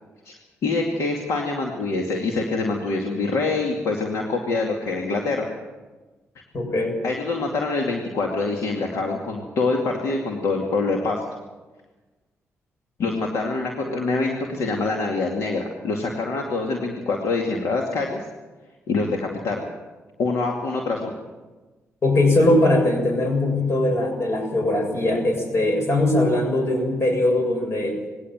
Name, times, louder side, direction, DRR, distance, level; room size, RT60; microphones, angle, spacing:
voice 1, 0.6-5.5 7.0-11.2 13.0-18.2 18.9-19.7 20.2-21.2, left 3 dB, 80° left, 1 dB, 2.4 m, -25 dB
voice 2, 6.5-7.0 22.0-28.0, left 1 dB, 60° left, 3 dB, 7.1 m, -20 dB
20.5 x 17.0 x 7.5 m, 1.2 s
cardioid pair, 60°, 5 cm